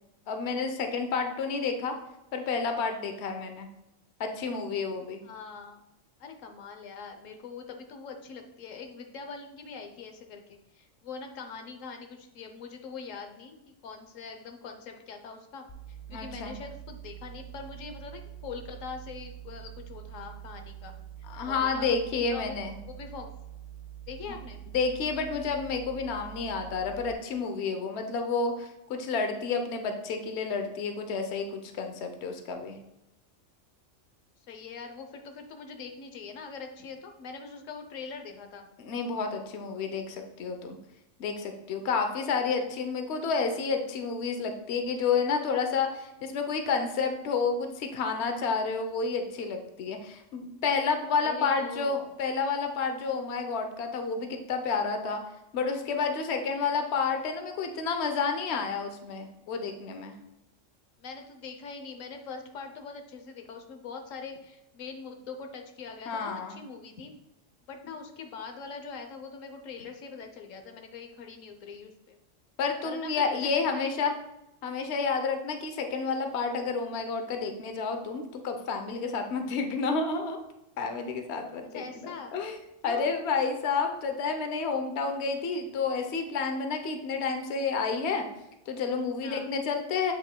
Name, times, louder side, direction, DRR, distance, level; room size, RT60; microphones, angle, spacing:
voice 1, 0.3-1.9 2.3-3.7 4.2-5.2 16.1-16.5 21.3-22.8 24.7-32.8 38.8-40.8 41.2-55.2 55.5-60.1 66.1-66.6 72.6-74.1 74.6-80.4 80.8-82.6 82.8-88.3 88.7-90.1, left 5 dB, 60° left, 5 dB, 1.0 m, -30 dB
voice 2, 5.2-5.8 6.2-20.9 21.4-23.3 24.1-24.6 34.5-38.7 51.2-52.0 56.6-56.7 61.0-67.1 67.7-72.2 72.8-74.1 81.7-82.4 82.9-83.1 89.2-89.5, left 5 dB, 85° left, 5 dB, 1.2 m, -43 dB
sound 1, 15.7-27.1, right 11 dB, 40° left, 0.6 m, -45 dB
7.8 x 7.2 x 2.2 m, 0.90 s
omnidirectional pair, 1.3 m